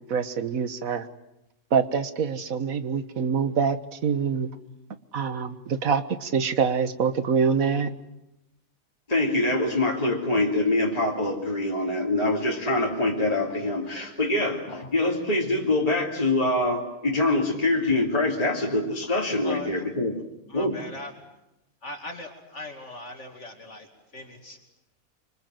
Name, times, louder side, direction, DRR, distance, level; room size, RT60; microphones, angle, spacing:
voice 1, 0.1-1.1 1.7-4.5 5.1-7.9, right 6 dB, 70° right, 11 dB, 1.7 m, -25 dB
voice 2, 9.1-20.1 20.5-20.8, left 2 dB, 25° left, -2 dB, 3.0 m, -24 dB
voice 3, 19.4-19.8 20.5-21.1 21.8-23.9 24.1-24.6, left 2 dB, 55° left, 3 dB, 2.9 m, -39 dB
26.0 x 25.0 x 7.9 m, 0.92 s
omnidirectional pair, 1.5 m